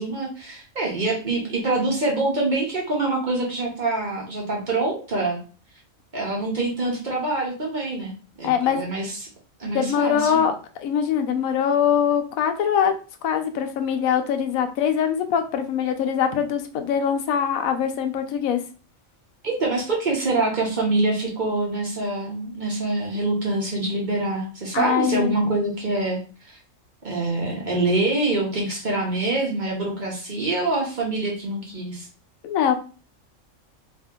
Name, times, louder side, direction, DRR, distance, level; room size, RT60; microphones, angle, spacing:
voice 1, 0.0-5.4 6.1-8.1 8.4-9.1 9.6-10.4 19.4-26.2 26.5-26.6 27.0-32.1, right 2 dB, 40° right, -1 dB, 0.8 m, -25 dB
voice 2, 8.4-8.8 9.7-12.9 13.2-18.6 24.7-25.3 32.4-32.7, left 8 dB, 90° left, 7 dB, 1.0 m, -23 dB
2.8 x 2.6 x 3.5 m, 0.37 s
omnidirectional pair, 1.4 m